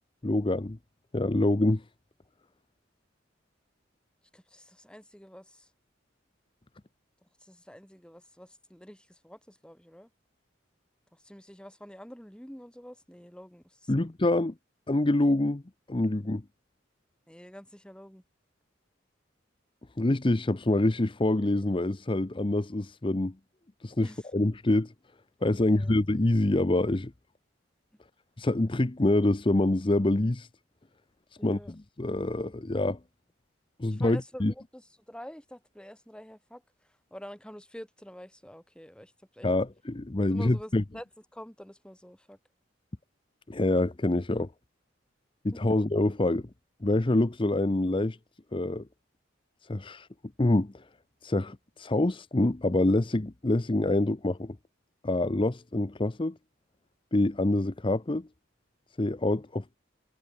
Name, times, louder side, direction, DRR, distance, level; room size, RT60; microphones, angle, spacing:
voice 1, 0.2-0.8 1.1-1.8 13.9-14.5 14.9-15.6 15.9-16.4 20.0-23.3 23.8-24.9 25.4-27.1 28.4-30.5 31.4-33.0 33.8-34.5 39.4-40.8 43.5-44.5 45.4-46.5 46.8-48.2 48.5-48.8 49.7-50.1 50.4-50.8 51.2-54.6 55.0-56.4 57.1-58.3 59.0-59.8, left 2 dB, 25° left, 0.7 m, -26 dB
voice 2, 4.3-5.7 7.4-10.1 11.1-14.1 17.3-18.2 24.0-24.2 25.6-25.9 31.4-31.7 33.8-36.6 37.1-39.5 40.3-41.0 41.3-42.4 45.5-45.8, equal, 5° left, 3.2 m, -47 dB
head